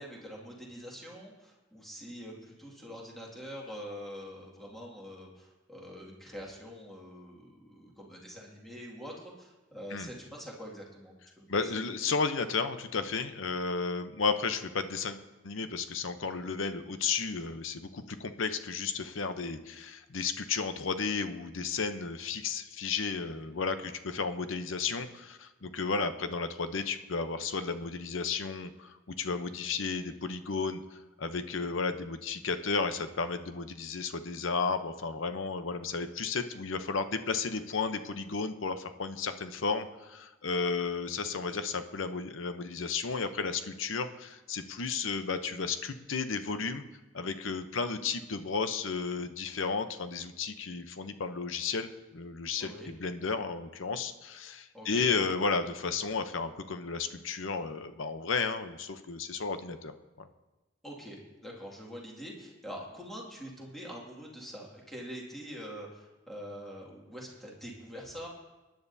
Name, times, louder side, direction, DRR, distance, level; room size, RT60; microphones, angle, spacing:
voice 1, 0.0-11.8 52.6-52.9 54.7-55.1 60.8-68.3, equal, ahead, -3 dB, 2.2 m, -45 dB
voice 2, 11.5-15.2 15.4-46.8 47.1-59.9 60.2-60.3, left 4 dB, 75° left, 9 dB, 0.8 m, -33 dB
24.0 x 10.5 x 2.7 m, 1.1 s
head